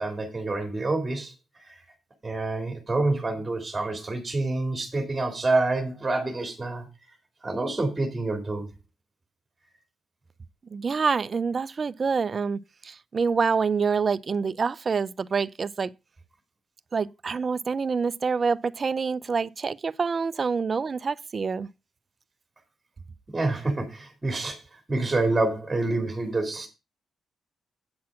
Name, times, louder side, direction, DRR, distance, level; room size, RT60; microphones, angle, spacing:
voice 1, 0.0-1.8 2.2-6.9 7.4-8.7 23.3-26.7, right 2 dB, 15° right, 2.2 m, -27 dB
voice 2, 10.7-12.6 12.8-15.9 16.9-21.7, right 5 dB, 35° right, 0.5 m, -26 dB
8.6 x 6.1 x 5.8 m
cardioid pair, 130°, 0 cm